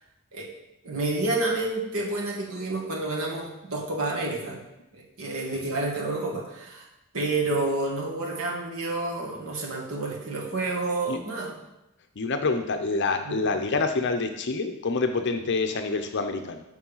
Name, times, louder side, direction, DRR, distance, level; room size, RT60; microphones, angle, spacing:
voice 1, 0.8-4.6 4.9-6.9 7.1-11.5 13.3-13.4, right 2 dB, 75° right, -2 dB, 2.1 m, -29 dB
voice 2, 12.2-16.6, left 3 dB, 55° left, 6 dB, 0.7 m, -27 dB
7.2 x 6.2 x 5.6 m, 0.91 s
head